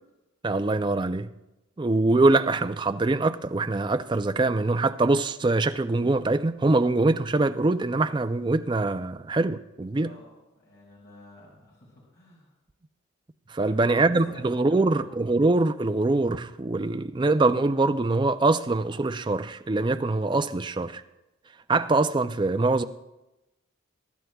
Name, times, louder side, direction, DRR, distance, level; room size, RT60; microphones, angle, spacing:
voice 1, 0.4-1.3 1.8-10.1 13.5-21.0 21.7-22.8, right 2 dB, 20° right, 0.4 m, -23 dB
voice 2, 9.9-12.5 13.6-15.1, left 1 dB, 65° left, 5.3 m, -49 dB
23.0 x 11.5 x 2.3 m
head